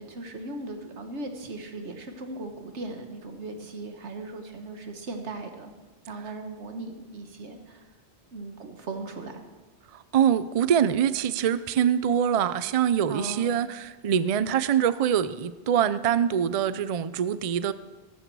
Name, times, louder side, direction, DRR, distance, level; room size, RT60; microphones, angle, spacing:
voice 1, 0.0-5.7 6.1-7.9 8.3-9.4 13.1-13.6, right 2 dB, 90° right, 5 dB, 1.6 m, -38 dB
voice 2, 9.9-17.7, right 9 dB, 50° right, 15 dB, 0.4 m, -24 dB
13.5 x 13.5 x 4.7 m, 1.2 s
omnidirectional pair, 1.1 m